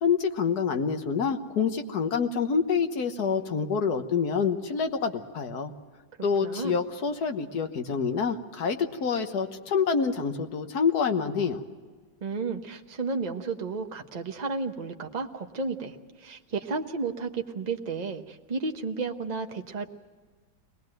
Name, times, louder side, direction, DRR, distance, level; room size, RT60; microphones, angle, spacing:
voice 1, 0.0-5.7 6.2-11.6, left 6 dB, 60° left, 6 dB, 1.7 m, -27 dB
voice 2, 6.4-6.7 12.2-16.0 16.2-19.9, right 4 dB, 30° right, 4 dB, 0.9 m, -32 dB
23.5 x 19.0 x 7.8 m, 1.5 s
omnidirectional pair, 2.0 m